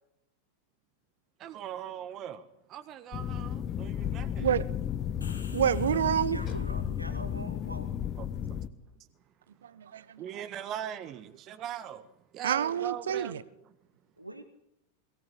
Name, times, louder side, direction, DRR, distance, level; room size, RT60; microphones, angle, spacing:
voice 1, 1.4-4.5 8.2-8.6 10.2-12.1 12.3-13.4, right 10 dB, 35° right, 1.6 m, -40 dB
sound 1, 3.1-8.7, left 9 dB, 30° left, 1.3 m, -33 dB
sound 2, 5.0-6.9, left 3 dB, 75° left, 5.4 m, -52 dB
voice 2, 5.5-6.4 9.6-10.2 12.4-13.4, right 9 dB, 65° right, 1.2 m, -28 dB
voice 3, 6.3-7.9 14.2-14.4, right 1 dB, 85° right, 2.3 m, -43 dB
22.5 x 17.5 x 8.6 m
figure-of-eight pair, 90°, 0 cm